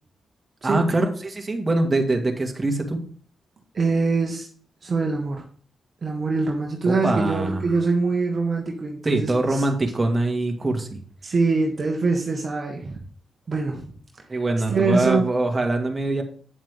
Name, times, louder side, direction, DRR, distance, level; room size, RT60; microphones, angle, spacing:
voice 1, 0.6-3.0 6.9-7.6 9.0-11.0 14.3-16.2, right 2 dB, 30° right, 3 dB, 2.2 m, -23 dB
voice 2, 3.7-4.5 4.8-5.4 6.0-9.6 11.2-13.0 13.5-13.9 14.7-15.3, right 3 dB, 50° right, 1 dB, 1.6 m, -23 dB
9.2 x 7.4 x 3.7 m, 0.44 s
supercardioid pair, 50°, 0 cm